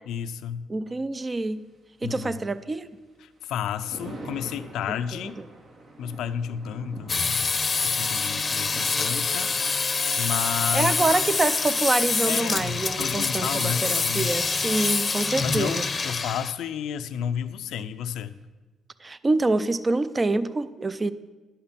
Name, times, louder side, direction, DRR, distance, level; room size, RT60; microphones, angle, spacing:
voice 1, 0.1-0.7 2.0-2.4 3.2-5.4 6.0-7.5 7.8-9.5 10.2-11.2 12.3-14.3 15.4-18.3, left 8 dB, 80° left, 12 dB, 0.5 m, -32 dB
voice 2, 0.7-1.7 2.0-2.9 10.7-15.8 19.0-21.1, right 3 dB, 25° right, 14 dB, 0.5 m, -26 dB
Thunder, 1.3-18.4, right 2 dB, 65° right, 2.0 m, -48 dB
sound 1, 7.1-16.5, left 4 dB, 35° left, 0.7 m, -26 dB
10.5 x 5.7 x 7.3 m, 1.2 s
cardioid pair, 90°, 0 cm